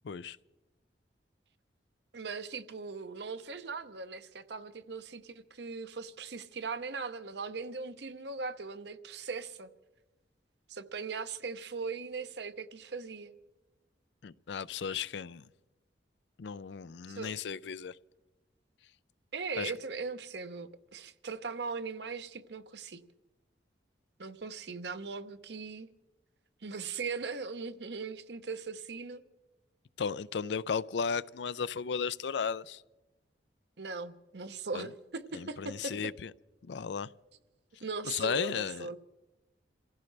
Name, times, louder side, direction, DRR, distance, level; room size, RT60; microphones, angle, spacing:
voice 1, 0.0-0.4 14.2-15.5 16.4-18.0 19.6-19.7 30.0-32.8 34.7-34.9 35.3-36.3 36.6-37.1 38.0-38.9, left 6 dB, 70° left, 0.4 m, -35 dB
voice 2, 2.1-9.7 10.7-13.3 17.1-17.4 19.3-23.0 24.2-25.9 26.6-29.2 33.8-35.9 37.8-39.0, right 4 dB, 65° right, 0.8 m, -39 dB
28.0 x 15.5 x 3.3 m
head